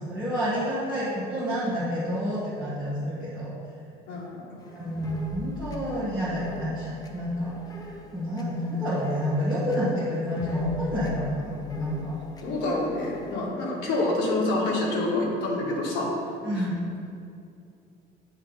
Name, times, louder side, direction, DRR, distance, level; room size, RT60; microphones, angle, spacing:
voice 1, 0.0-3.5 4.7-7.5 8.1-12.2 16.4-16.8, equal, 5° right, -11 dB, 1.1 m, -29 dB
voice 2, 4.1-4.6 12.4-16.1 16.5-16.7, left 2 dB, 85° left, -2 dB, 1.5 m, -27 dB
sound 1, 4.6-13.4, left 3 dB, 20° left, 0.5 m, -43 dB
8.7 x 3.2 x 5.3 m, 2.5 s
cardioid pair, 175°, 18 cm